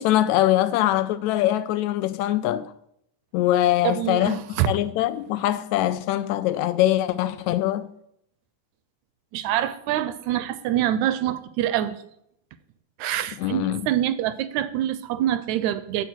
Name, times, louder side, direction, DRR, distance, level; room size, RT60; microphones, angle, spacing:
voice 1, 0.0-2.7 3.3-4.4 4.7-7.9 13.4-13.8, left 13 dB, 80° left, 1.7 m, -22 dB
voice 2, 3.8-4.7 9.3-12.0 13.0-16.0, right 12 dB, 80° right, 1.8 m, -25 dB
9.2 x 7.8 x 6.3 m
omnidirectional pair, 3.6 m